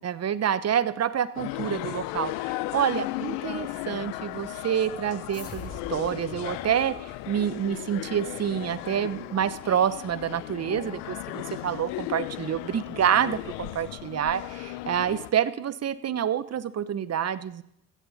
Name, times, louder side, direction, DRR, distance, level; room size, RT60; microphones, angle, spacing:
voice 1, 0.0-17.6, right 9 dB, 35° right, 16 dB, 0.9 m, -28 dB
sound 1, 1.3-15.3, left 17 dB, 70° left, 0.8 m, -36 dB
sound 2, 5.3-8.0, left 4 dB, 30° left, 2.6 m, -45 dB
15.5 x 14.5 x 4.1 m, 0.76 s
hypercardioid pair, 65°, 44 cm